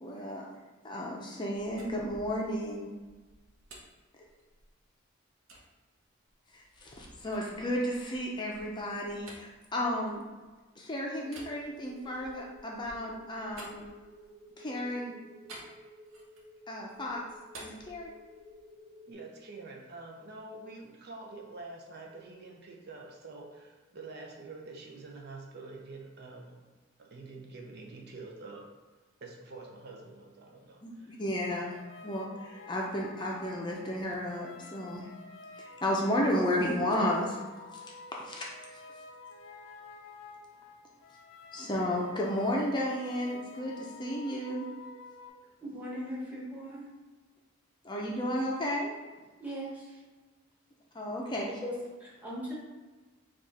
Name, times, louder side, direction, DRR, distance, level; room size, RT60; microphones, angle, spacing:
voice 1, 0.0-0.4 0.8-2.9 6.5-10.2 10.8-13.9 14.6-15.1 16.7-17.2 17.6-18.1 30.8-31.8 32.0-35.1 35.5-37.4 37.7-39.0 41.5-44.7 47.8-48.9 50.9-51.5, left 1 dB, 20° left, -2 dB, 0.5 m, -33 dB
sound 1, 1.5-4.9 5.5-5.7 6.2-10.7 11.2-14.5 15.5-16.6 16.9-18.7, right 1 dB, 80° right, 0.9 m, -53 dB
sound 2, 11.2-19.1, equal, 30° right, 1.4 m, -54 dB
voice 2, 19.1-26.5 27.0-28.6 29.2-31.1, right 3 dB, 55° right, 0 dB, 0.6 m, -46 dB
sound 3, 31.6-45.3, left 3 dB, 75° left, 0.5 m, -50 dB
voice 3, 45.6-46.9 49.4-50.0 51.6-51.7 52.0-52.5, equal, 10° right, -6 dB, 1.1 m, -39 dB
4.6 x 2.5 x 4.1 m, 1.3 s
head